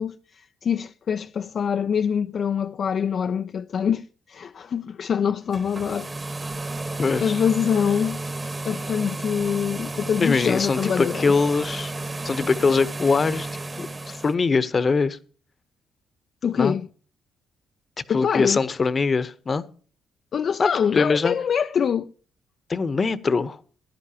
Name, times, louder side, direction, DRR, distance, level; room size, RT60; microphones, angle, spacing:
voice 1, 0.0-6.1 7.2-8.2 8.7-11.4 16.4-16.9 18.1-18.6 20.3-22.1, left 7 dB, 55° left, 0.4 m, -25 dB
sound 1, 5.4-14.3, right 2 dB, 20° right, 1.3 m, -32 dB
voice 2, 7.0-7.3 10.2-11.9 12.2-13.5 13.8-15.2 16.6-16.8 18.1-19.6 20.6-21.3 22.7-23.6, left 4 dB, 35° left, 0.9 m, -22 dB
17.0 x 11.0 x 2.9 m
cardioid pair, 90°, 0 cm